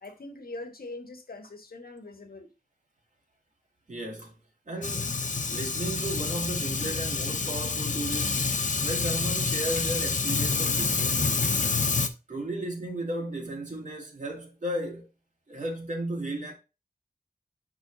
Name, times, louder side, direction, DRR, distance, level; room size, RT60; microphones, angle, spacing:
voice 1, 0.0-2.5, left 2 dB, 70° left, 1.3 m, -42 dB
voice 2, 3.9-4.3 4.7-5.2 5.5-11.5 12.3-15.1 15.5-16.5, right 1 dB, 50° right, 2.5 m, -35 dB
Fire, 4.8-12.1, left 4 dB, 50° left, 0.7 m, -28 dB
11.0 x 3.9 x 2.7 m
wide cardioid pair, 85°, 16 cm